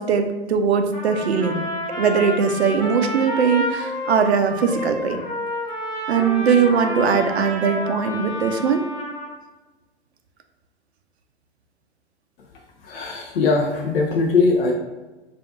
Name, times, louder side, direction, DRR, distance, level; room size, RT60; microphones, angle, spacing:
voice 1, 0.0-1.6 2.0-5.2 6.1-8.8, right 6 dB, 70° right, 7 dB, 0.5 m, -20 dB
Trumpet, 0.9-9.3, left 1 dB, 10° left, 0.9 m, -30 dB
voice 2, 12.8-14.7, left 4 dB, 60° left, 1 dB, 0.5 m, -20 dB
4.9 x 2.5 x 2.4 m, 1.2 s
figure-of-eight pair, 105°, 33 cm